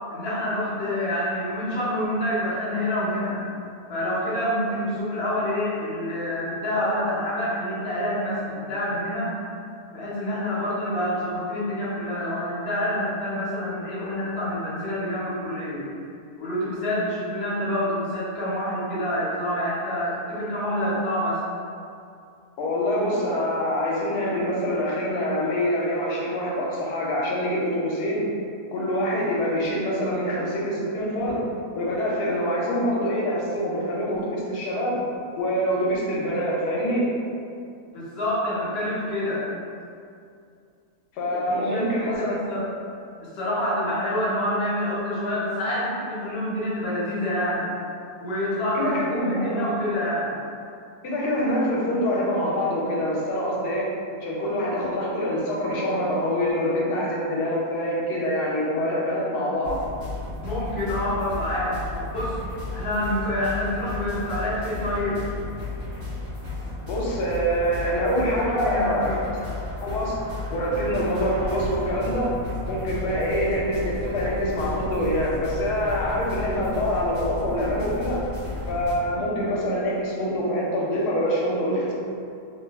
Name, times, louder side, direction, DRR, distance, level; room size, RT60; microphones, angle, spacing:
voice 1, 0.0-3.4 3.9-9.3 9.9-15.8 16.4-21.4 37.9-39.5 41.3-42.7 43.2-47.7 48.2-50.3 60.4-62.4 62.7-65.2 68.4-69.2, left 1 dB, 55° left, -8 dB, 0.8 m, -27 dB
voice 2, 22.6-28.3 28.7-31.4 31.7-35.0 35.4-37.1 41.1-42.3 48.7-49.7 51.0-53.9 54.2-59.8 66.8-69.2 69.8-70.2 70.5-72.3 72.7-78.2 78.7-81.9, equal, 85° left, -3 dB, 1.1 m, -25 dB
sound 1, 59.6-78.9, left 2 dB, 90° right, 1.6 m, -33 dB
3.2 x 2.2 x 2.3 m, 2.4 s
omnidirectional pair, 1.7 m